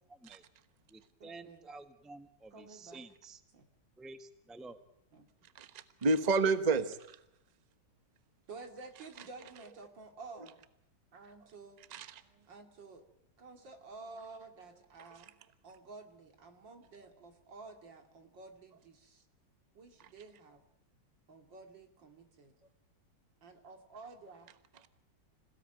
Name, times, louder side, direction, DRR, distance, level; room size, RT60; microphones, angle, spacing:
voice 1, 0.1-0.4 0.9-3.4 4.0-4.8, right 3 dB, ahead, 9 dB, 1.0 m, -51 dB
voice 2, 1.2-1.7 2.5-3.0 3.5-3.7 5.1-5.3 8.5-10.6 11.1-11.8 12.5-13.0 13.4-15.3 15.6-19.2 19.7-20.6 21.3-22.5 23.4-24.5, right 3 dB, 80° right, 5 dB, 3.1 m, -51 dB
voice 3, 5.5-7.2 11.9-12.2, right 3 dB, 25° right, 10 dB, 1.1 m, -30 dB
27.0 x 17.0 x 9.1 m, 0.83 s
omnidirectional pair, 2.0 m